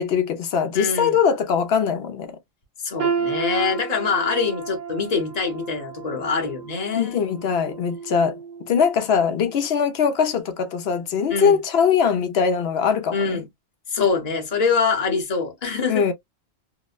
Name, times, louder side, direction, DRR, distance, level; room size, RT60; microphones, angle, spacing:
voice 1, 0.0-2.4 6.9-8.4 8.7-13.4 15.9-16.1, left 6 dB, 70° left, 0.9 m, -21 dB
voice 2, 0.7-1.2 2.8-7.2 11.3-11.6 13.1-13.5 13.9-16.1, left 5 dB, 40° left, 0.9 m, -24 dB
sound 1, 3.0-8.9 9.3-9.6 10.3-10.4, right 6 dB, 50° right, 0.6 m, -32 dB
2.8 x 2.1 x 2.3 m
omnidirectional pair, 1.1 m